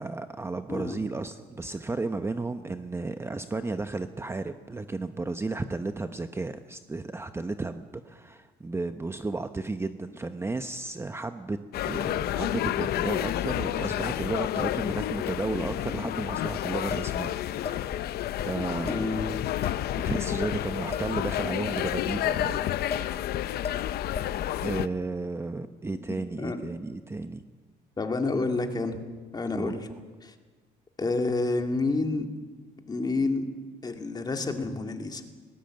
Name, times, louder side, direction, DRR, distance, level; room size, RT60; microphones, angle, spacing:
voice 1, 0.0-11.6 11.8-17.9 18.4-19.2 20.0-23.2 24.6-27.4 29.5-29.7, right 3 dB, 15° right, 9 dB, 0.9 m, -33 dB
voice 2, 0.7-1.0 18.9-19.3 26.4-26.7 28.0-29.0 29.3-29.9 30.2-30.3 31.0-32.3 32.9-33.4 33.8-35.2, left 3 dB, 25° left, 5 dB, 2.3 m, -29 dB
sound 1, 11.7-24.9, left 13 dB, 70° left, 0.7 m, -30 dB
sound 2, 16.9-18.0 18.4-18.5 18.9-19.2 19.6-20.6 20.9-22.5 22.9-23.3 23.6-24.5, left 6 dB, 40° left, 2.0 m, -37 dB
20.0 x 19.0 x 7.8 m, 1.4 s
cardioid pair, 110°, 17 cm